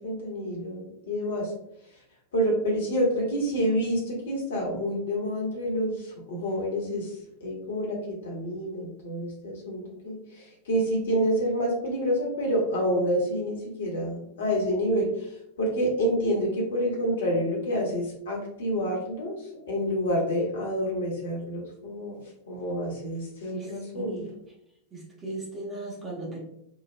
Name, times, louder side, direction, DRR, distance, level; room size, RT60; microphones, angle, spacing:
voice 1, 0.0-1.5 2.3-7.1 7.4-15.3 15.6-22.2 22.5-24.2, equal, 60° left, -2 dB, 0.9 m, -28 dB
voice 2, 23.5-24.3 24.9-26.4, right 2 dB, 20° right, -4 dB, 0.9 m, -37 dB
2.9 x 2.0 x 2.5 m, 0.76 s
figure-of-eight pair, 90°, 0 cm